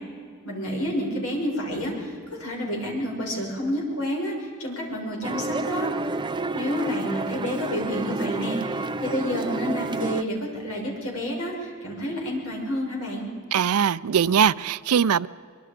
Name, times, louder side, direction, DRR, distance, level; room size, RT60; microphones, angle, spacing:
voice 1, 0.4-5.9 6.5-13.3, equal, 70° left, -1 dB, 6.1 m, -29 dB
sound 1, 5.2-10.2, right 2 dB, 20° right, 0.5 m, -30 dB
voice 2, 13.5-15.3, right 7 dB, 75° right, 18 dB, 0.5 m, -21 dB
23.5 x 23.5 x 5.1 m, 2.2 s
head